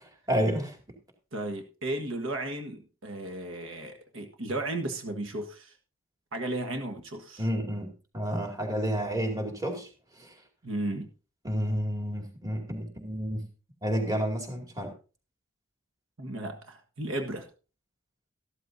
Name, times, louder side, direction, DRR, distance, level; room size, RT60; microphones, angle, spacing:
voice 1, 0.3-0.8 7.4-9.9 10.2-10.3 11.4-13.5 13.8-14.9, equal, 20° right, 3 dB, 2.3 m, -30 dB
voice 2, 1.3-5.7 6.3-7.5 10.6-11.1 16.2-17.5, right 1 dB, 75° right, 5 dB, 1.5 m, -34 dB
13.5 x 13.0 x 2.7 m, 0.35 s
head